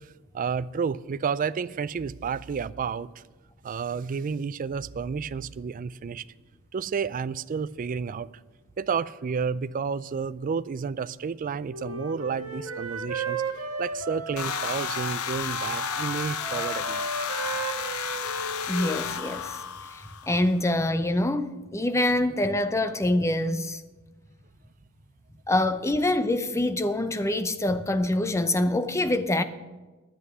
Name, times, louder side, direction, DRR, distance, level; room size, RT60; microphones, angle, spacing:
voice 1, 0.3-3.2 3.6-6.2 6.7-8.3 8.8-13.4 13.8-17.1, right 6 dB, 40° right, 0.3 m, -31 dB
Wind instrument woodwind instrument, 11.7-15.2 15.5-19.0, right 3 dB, 90° right, 1.6 m, -34 dB
sound 1, 14.4-20.5, left 7 dB, 85° left, 0.8 m, -32 dB
voice 2, 18.7-19.6 19.9-23.8 25.5-29.4, left 1 dB, 15° left, 0.6 m, -25 dB
9.7 x 7.9 x 9.5 m
head